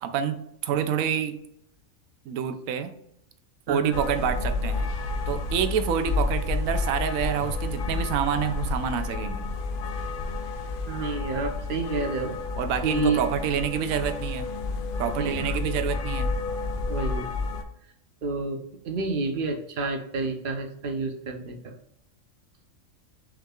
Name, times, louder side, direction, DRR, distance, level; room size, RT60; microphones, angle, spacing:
voice 1, 0.0-1.4 2.3-2.9 3.7-4.9 5.3-9.5 12.6-14.5 15.0-16.3, right 8 dB, 85° right, 9 dB, 1.0 m, -27 dB
voice 2, 3.7-4.0 10.9-12.4 12.8-13.2 15.2-15.6 16.9-17.3 18.2-21.8, right 3 dB, 50° right, 5 dB, 0.7 m, -29 dB
sound 1, 3.9-17.6, left 3 dB, 65° left, 0.5 m, -30 dB
6.4 x 3.6 x 2.3 m, 0.77 s
omnidirectional pair, 1.4 m